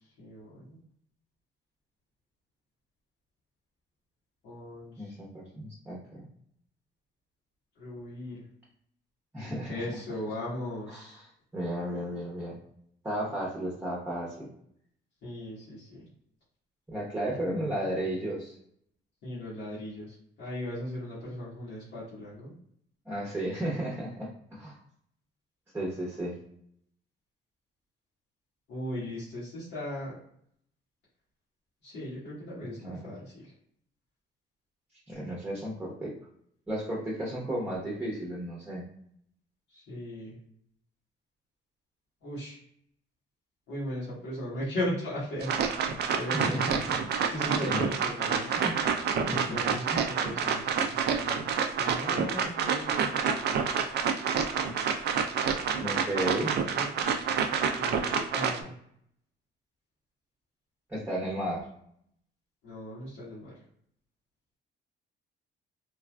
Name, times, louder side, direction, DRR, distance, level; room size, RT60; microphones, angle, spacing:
voice 1, 0.2-0.8 4.4-5.1 7.7-8.4 9.6-11.2 15.2-16.1 19.2-22.5 28.7-30.2 31.8-33.5 39.7-40.4 42.2-42.6 43.7-45.8 46.1-46.6 47.2-48.5 49.2-51.5 51.8-53.1 56.2-56.9 57.8-58.7 62.6-63.5, left 1 dB, 85° left, -12 dB, 1.2 m, -38 dB
voice 2, 5.0-6.3 9.3-9.8 10.9-11.1 11.5-12.6 13.0-14.5 16.9-18.6 23.1-24.8 25.7-26.4 32.8-33.0 35.1-36.1 36.7-38.8 46.3-47.0 47.5-47.8 48.6-48.8 49.3-49.6 49.9-50.1 55.8-56.5 60.9-61.6, right 1 dB, 10° right, -4 dB, 0.8 m, -33 dB
sound 1, 45.4-58.6, right 6 dB, 55° right, 0.4 m, -28 dB
3.2 x 2.4 x 2.2 m, 0.69 s
cardioid pair, 90°, 20 cm